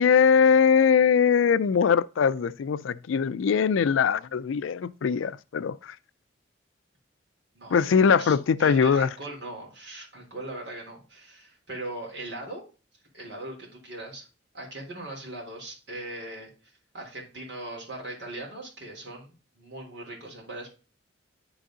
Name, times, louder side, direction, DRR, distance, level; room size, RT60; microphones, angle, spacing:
voice 1, 0.0-5.9 7.7-9.1, left 6 dB, 90° left, 0.4 m, -21 dB
voice 2, 7.5-12.6 13.1-14.3 14.5-20.7, right 2 dB, 60° right, 3.3 m, -40 dB
9.9 x 4.0 x 3.7 m
head